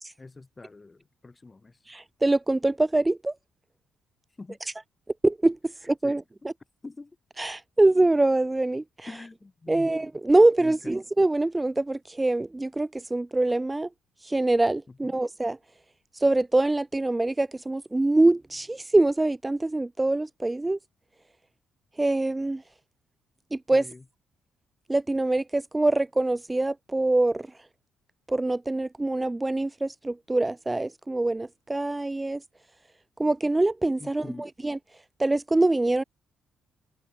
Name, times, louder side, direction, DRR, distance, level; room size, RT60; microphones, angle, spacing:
voice 1, 0.2-1.8 4.4-4.6 6.0-6.2 6.8-7.2 9.1-9.9 10.6-10.9 14.9-15.2 23.7-24.0 34.0-34.5, left 3 dB, 25° left, 5.9 m, -44 dB
voice 2, 1.9-3.3 5.2-6.5 7.4-9.1 9.7-13.9 14.2-15.6 16.1-20.8 22.0-22.6 23.5-23.8 24.9-27.5 28.3-32.4 33.2-34.8 35.2-36.0, right 2 dB, 15° right, 0.4 m, -24 dB
cardioid pair, 90°, 0 cm